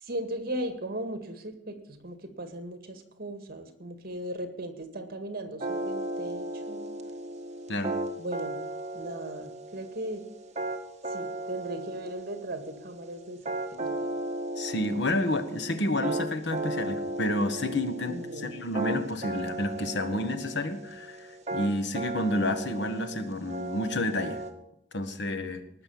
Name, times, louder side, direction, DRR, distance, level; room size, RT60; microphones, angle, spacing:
voice 1, 0.0-6.9 8.2-8.6 8.9-10.3 11.1-14.0 18.1-18.5, right 1 dB, 55° right, 8 dB, 1.9 m, -37 dB
sound 1, 5.6-24.5, right 2 dB, 40° right, 1.6 m, -36 dB
voice 2, 14.6-24.4 24.9-25.6, left 1 dB, 70° left, 9 dB, 1.4 m, -30 dB
19.0 x 6.7 x 7.2 m, 0.76 s
head